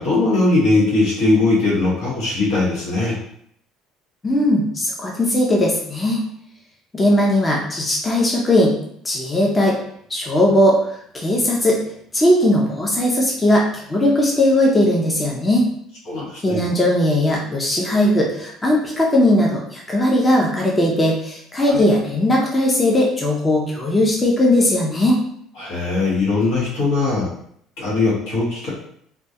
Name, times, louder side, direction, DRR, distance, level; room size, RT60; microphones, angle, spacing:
voice 1, 0.0-3.2 16.1-16.6 21.6-21.8 25.6-27.3 27.8-28.7, left 2 dB, 80° left, -6 dB, 1.1 m, -20 dB
voice 2, 4.2-6.2 6.9-8.7 9.0-9.8 10.1-11.8 12.1-15.7 16.4-25.2, left 1 dB, 20° left, -2 dB, 0.6 m, -18 dB
2.2 x 2.2 x 2.7 m, 0.68 s
supercardioid pair, 85°, 0 cm